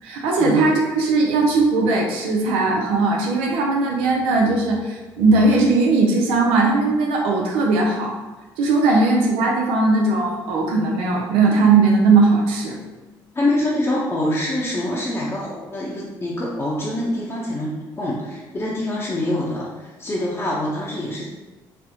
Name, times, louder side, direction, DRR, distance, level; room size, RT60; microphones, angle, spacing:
voice 1, 0.0-8.1 8.6-12.8, right 3 dB, 85° right, -1 dB, 0.4 m, -18 dB
voice 2, 13.3-21.3, left 1 dB, 30° left, -6 dB, 0.7 m, -25 dB
4.1 x 2.0 x 2.7 m, 1.2 s
supercardioid pair, 65°, 9 cm